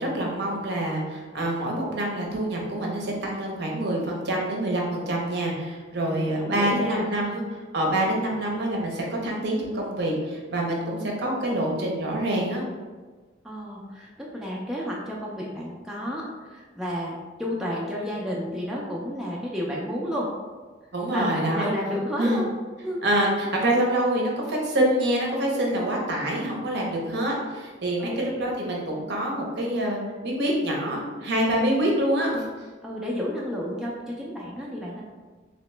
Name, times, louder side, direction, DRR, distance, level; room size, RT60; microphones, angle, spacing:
voice 1, 0.0-12.6 20.9-21.7 22.2-22.4 23.0-32.7, right 1 dB, 60° right, -1 dB, 0.7 m, -26 dB
voice 2, 6.1-7.4 13.4-20.3 21.1-22.5 22.8-23.0 28.0-28.3 32.8-35.0, equal, 5° right, -4 dB, 0.4 m, -31 dB
2.9 x 2.9 x 3.2 m, 1.4 s
head